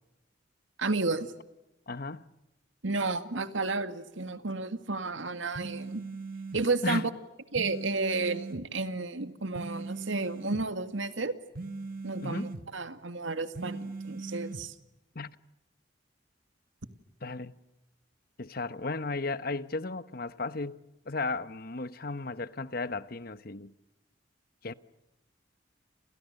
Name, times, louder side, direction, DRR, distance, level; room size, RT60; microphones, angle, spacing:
voice 1, 0.8-1.3 2.8-6.1 6.5-7.1 7.5-11.3 12.0-14.8, right 3 dB, 90° right, 2.1 m, -32 dB
voice 2, 1.9-2.3 6.8-7.0 12.2-12.5 15.1-15.4 17.2-17.5 18.4-20.8 21.1-23.7 24.6-24.7, left 3 dB, 50° left, 1.1 m, -35 dB
sound 1, 5.6-6.6 7.6-8.6 9.6-10.6 11.6-12.6 13.6-14.6, right 3 dB, 50° right, 1.4 m, -39 dB
29.5 x 28.5 x 6.7 m
head